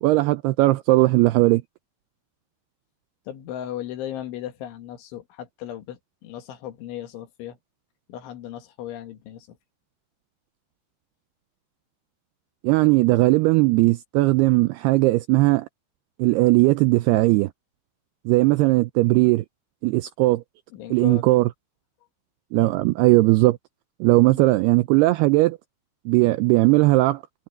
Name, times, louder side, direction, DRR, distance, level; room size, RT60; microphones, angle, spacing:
voice 1, 0.0-1.6 12.6-15.7 16.2-17.5 18.3-19.5 19.8-20.4 20.9-21.5 22.5-23.6 24.0-25.6 26.1-27.2, right 20 dB, 90° right, 2.3 m, -18 dB
voice 2, 3.3-7.6 8.1-9.6 20.7-21.2 24.3-24.4, left 11 dB, 90° left, 4.5 m, -36 dB
omnidirectional pair, 5.3 m